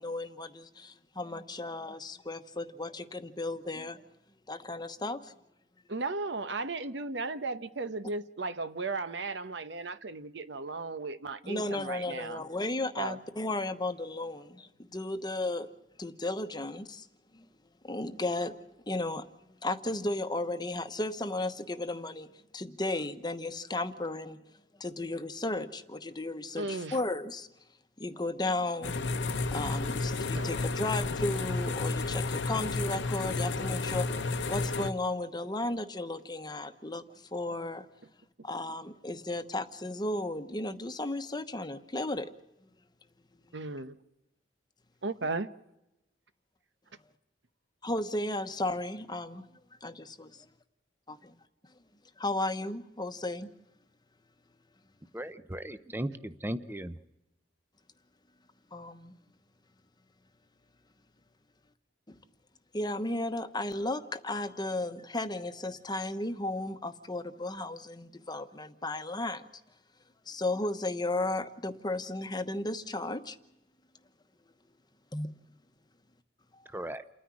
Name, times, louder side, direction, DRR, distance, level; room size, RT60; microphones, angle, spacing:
voice 1, 0.0-4.0 4.5-5.3 11.4-15.7 16.0-17.1 17.3-17.5 17.8-19.2 19.6-22.3 22.5-24.4 24.8-27.5 28.0-29.0 29.5-34.2 34.5-37.9 38.4-42.3 47.8-49.5 49.8-50.5 51.1-51.4 52.2-53.5 58.7-59.1 62.1-62.2 62.7-69.4 70.3-73.4 75.1-75.3, left 2 dB, 25° left, 1.0 m, -34 dB
voice 2, 5.9-12.4 13.0-13.2 26.6-27.0 30.4-30.5 43.5-44.0 45.0-45.5, right 3 dB, 70° right, 1.0 m, -35 dB
sound 1, 28.8-34.9, left 3 dB, 75° left, 0.9 m, -31 dB
voice 3, 55.1-56.9 76.7-77.0, right 1 dB, 10° right, 0.7 m, -36 dB
29.0 x 10.0 x 9.8 m
head